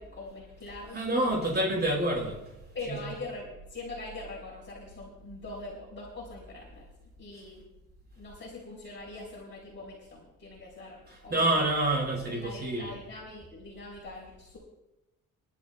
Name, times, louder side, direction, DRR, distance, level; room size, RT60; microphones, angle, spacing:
voice 1, 0.0-1.4 2.7-6.9 7.2-7.6 8.2-11.6 12.3-14.6, left 2 dB, 35° left, -5 dB, 4.0 m, -43 dB
voice 2, 0.9-2.4 2.8-3.0 11.1-13.0, right 1 dB, 30° right, -2 dB, 4.9 m, -28 dB
30.0 x 11.5 x 2.3 m, 0.94 s
wide cardioid pair, 170°, 33 cm